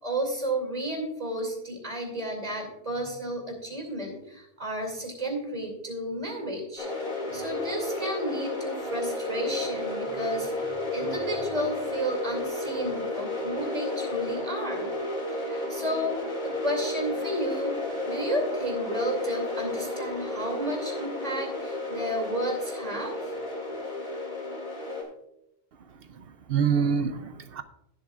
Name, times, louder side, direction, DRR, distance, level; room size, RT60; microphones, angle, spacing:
voice 1, 0.0-6.9 7.3-14.9 15.3-16.2 16.4-17.7 18.0-23.2, right 1 dB, 35° right, 1 dB, 2.8 m, -32 dB
sound 1, 6.8-25.0, left 2 dB, 45° left, 2.5 m, -32 dB
voice 2, 25.8-27.6, right 7 dB, 70° right, 11 dB, 0.8 m, -27 dB
16.5 x 7.8 x 2.4 m, 0.82 s
omnidirectional pair, 1.1 m